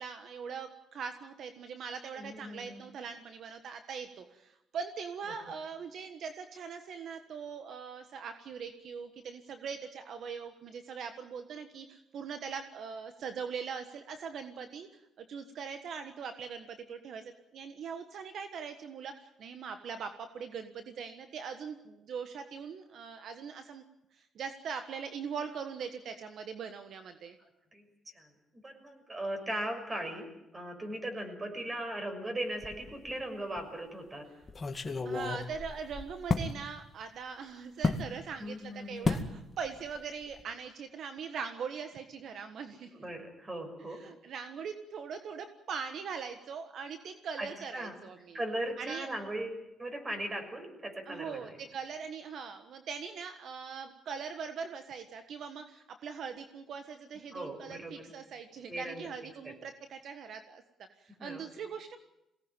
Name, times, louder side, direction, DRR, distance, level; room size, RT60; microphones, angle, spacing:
voice 1, 0.0-14.9 15.2-23.8 24.1-27.4 35.0-43.0 43.9-48.4 48.8-49.1 51.1-60.6 61.0-62.0, right 6 dB, 65° right, 8 dB, 1.5 m, -41 dB
voice 2, 2.2-2.8 27.4-34.3 38.4-39.1 42.9-44.0 47.4-48.0 48.3-51.6 57.3-58.0 58.7-59.5 61.2-61.5, right 1 dB, 25° right, 5 dB, 6.3 m, -39 dB
sound 1, 32.6-33.2 33.6-33.7 34.5-36.5 37.8-38.1 39.0-39.3 39.6-40.0 40.2-40.4, left 3 dB, 30° left, 2.2 m, -32 dB
22.5 x 18.0 x 9.1 m, 0.90 s
cardioid pair, 90°, 0 cm